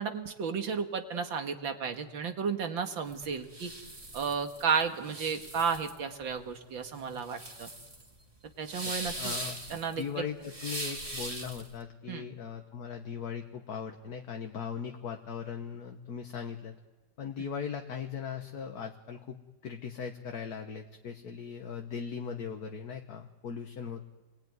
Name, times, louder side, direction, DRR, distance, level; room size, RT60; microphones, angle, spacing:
voice 1, 0.0-3.7 4.1-7.7 8.6-9.3 9.7-10.2 12.1-12.3, right 6 dB, 85° right, 5 dB, 2.5 m, -33 dB
sound 1, 3.1-11.7, right 1 dB, 20° right, 2.7 m, -41 dB
voice 2, 9.1-9.6 10.0-16.8 17.2-19.4 19.6-24.1, left 7 dB, 55° left, 4 dB, 1.7 m, -39 dB
29.5 x 21.0 x 9.6 m, 1.2 s
omnidirectional pair, 2.0 m